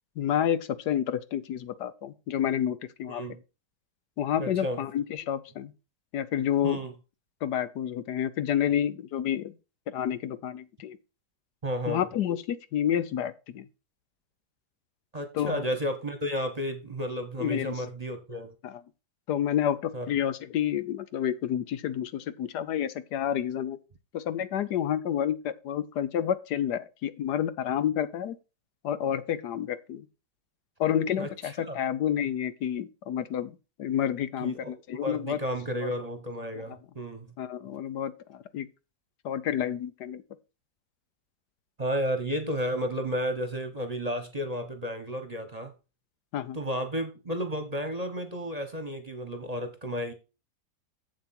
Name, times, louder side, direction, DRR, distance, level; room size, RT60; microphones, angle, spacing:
voice 1, 0.2-3.2 4.2-5.7 6.1-6.8 7.4-9.5 9.9-11.0 11.9-13.7 15.3-15.7 17.4-17.9 18.6-18.8 19.3-23.8 24.1-28.4 28.8-30.1 30.8-35.4 35.8-35.9 37.4-38.7 39.2-40.2 46.3-46.6, left 10 dB, 75° left, 1.3 m, -29 dB
voice 2, 3.1-3.4 4.4-4.8 6.6-6.9 11.6-12.0 15.1-18.5 19.9-20.1 31.2-31.3 31.6-31.8 34.4-34.7 35.0-37.3 41.8-45.7 46.5-50.1, equal, 25° right, 1.2 m, -32 dB
7.5 x 7.4 x 4.4 m
omnidirectional pair, 1.8 m